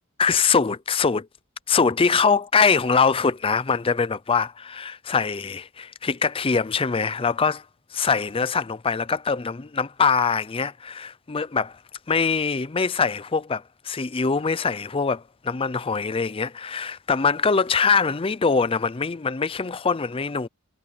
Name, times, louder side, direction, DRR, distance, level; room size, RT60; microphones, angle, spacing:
voice 1, 0.2-1.3 1.7-7.6 7.9-11.8 12.1-20.5, left 5 dB, 25° left, 0.5 m, -23 dB
head